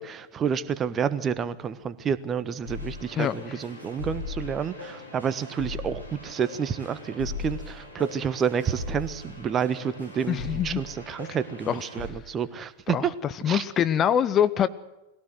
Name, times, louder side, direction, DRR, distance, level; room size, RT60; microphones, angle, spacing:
voice 1, 0.0-13.1 13.4-13.6, right 7 dB, 25° right, 14 dB, 1.3 m, -29 dB
sound 1, 2.6-12.1, left 4 dB, 85° left, 4.6 m, -39 dB
voice 2, 10.3-10.8 11.7-11.8 12.9-14.7, left 9 dB, 30° left, 13 dB, 0.8 m, -24 dB
21.5 x 17.0 x 7.9 m, 0.99 s
figure-of-eight pair, 90°, 0 cm